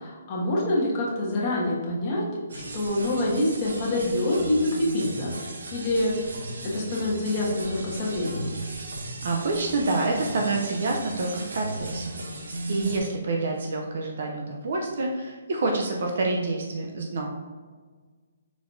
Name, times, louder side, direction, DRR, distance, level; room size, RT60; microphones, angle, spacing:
voice 1, 0.0-6.1 6.6-8.6, left 1 dB, 25° left, -5 dB, 1.3 m, -26 dB
sound 1, 2.5-13.0, right 2 dB, 85° right, 0.9 m, -36 dB
voice 2, 9.0-12.2 12.7-17.3, right 3 dB, 60° right, 1 dB, 0.6 m, -27 dB
4.7 x 4.0 x 2.7 m, 1.5 s
hypercardioid pair, 160°, 0 cm